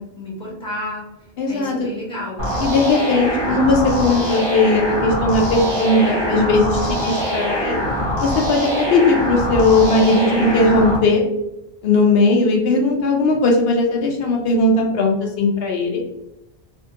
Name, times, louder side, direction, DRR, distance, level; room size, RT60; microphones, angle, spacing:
voice 1, 0.0-2.5, left 1 dB, 5° left, -4 dB, 1.0 m, -32 dB
voice 2, 1.4-1.9 2.6-7.8 8.2-11.2 11.8-16.0, left 2 dB, 70° left, 1 dB, 0.8 m, -18 dB
sound 1, 2.4-11.0, equal, 55° right, 1.3 m, -23 dB
3.5 x 2.6 x 2.7 m, 0.89 s
omnidirectional pair, 1.1 m